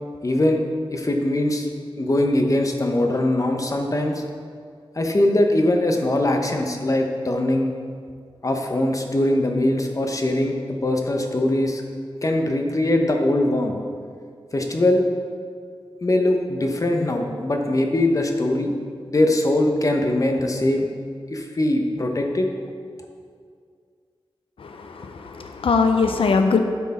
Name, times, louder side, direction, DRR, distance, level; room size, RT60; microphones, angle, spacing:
voice 1, 0.2-0.6 0.9-1.7 2.0-4.2 5.0-7.7 8.4-10.6 10.8-11.8 12.2-13.7 14.5-15.0 16.0-18.7 19.1-20.9 21.3-22.5, left 1 dB, 35° left, 3 dB, 0.9 m, -21 dB
voice 2, 24.6-26.6, left 4 dB, 80° left, 6 dB, 0.5 m, -21 dB
12.0 x 4.6 x 4.2 m, 2.2 s
wide cardioid pair, 80°, 9 cm